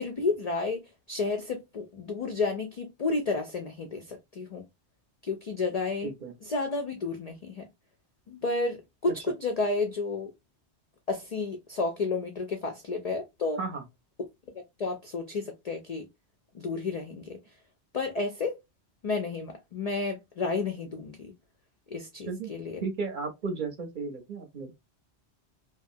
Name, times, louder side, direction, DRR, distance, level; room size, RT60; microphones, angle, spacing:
voice 1, 0.0-4.7 5.2-6.1 6.4-7.7 8.3-10.3 11.1-13.6 14.8-16.1 16.5-17.4 17.9-18.6 19.0-21.3 21.9-22.8, left 3 dB, 65° left, 0.4 m, -31 dB
voice 2, 6.0-6.3 13.6-13.8 22.2-22.5 22.8-24.7, right 4 dB, 50° right, 0.7 m, -34 dB
2.8 x 2.4 x 2.5 m
omnidirectional pair, 1.2 m